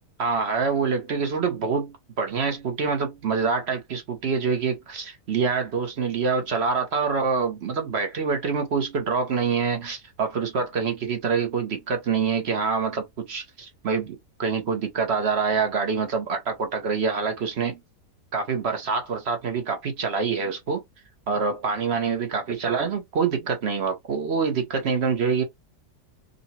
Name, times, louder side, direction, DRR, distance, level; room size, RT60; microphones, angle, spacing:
voice 1, 0.2-17.8 18.3-20.8 21.3-25.4, right 5 dB, 50° right, 0.8 m, -26 dB
3.8 x 2.2 x 2.7 m
omnidirectional pair, 1.7 m